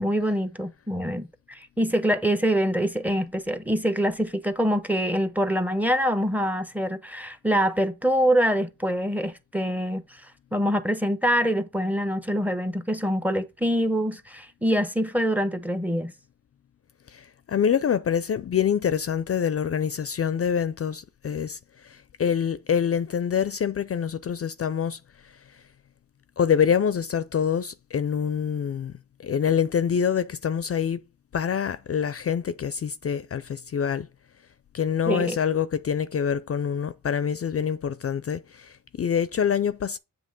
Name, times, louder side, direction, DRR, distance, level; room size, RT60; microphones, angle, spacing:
voice 1, 0.0-10.0 10.5-16.1 35.1-35.4, equal, 5° right, 0.7 m, -25 dB
voice 2, 17.1-25.4 26.4-28.9 29.2-31.0 31.3-34.1 34.7-40.0, left 8 dB, 50° left, 0.4 m, -26 dB
7.5 x 3.1 x 5.1 m
cardioid pair, 75°, 32 cm